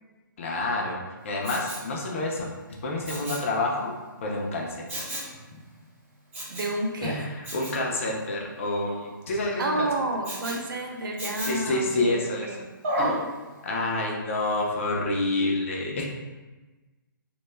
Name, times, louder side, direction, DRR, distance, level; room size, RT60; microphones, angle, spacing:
voice 1, 0.4-2.5 2.8-3.9 4.2-4.9 7.0-9.9 11.4-12.5 13.0-13.2 13.6-16.1, left 2 dB, 35° left, -1 dB, 0.4 m, -28 dB
Respiratory sounds, 1.4-1.9 3.0-3.5 4.9-5.3 6.3-6.8 7.4-7.8 10.2-10.6 11.2-11.7 12.8-13.2 13.7-13.8, right 1 dB, 35° right, 1.0 m, -31 dB
voice 2, 6.5-7.2 9.6-12.7, right 2 dB, 75° right, 1 dB, 0.5 m, -30 dB
2.2 x 2.0 x 3.1 m, 1.2 s
hypercardioid pair, 160°, 11 cm